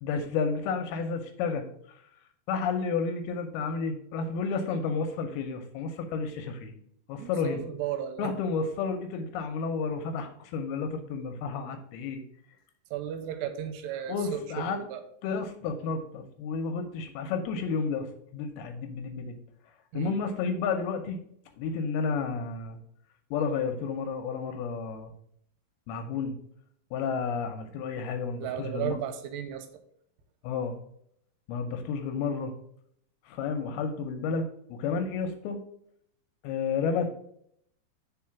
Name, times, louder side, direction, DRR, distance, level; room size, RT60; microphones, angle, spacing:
voice 1, 0.0-2.0 2.5-6.7 7.1-7.6 8.2-12.2 14.1-14.8 15.2-19.4 19.9-21.2 21.6-22.8 23.3-25.1 25.9-26.4 26.9-29.0 30.4-30.8 31.5-32.5 33.3-35.6 36.4-37.1, left 5 dB, 80° left, 6 dB, 2.4 m, -31 dB
voice 2, 7.2-8.3 12.9-14.5 14.7-15.0 19.9-20.1 28.4-29.7, right 10 dB, 90° right, 8 dB, 2.7 m, -34 dB
4.9 x 4.7 x 5.8 m, 0.69 s
omnidirectional pair, 4.8 m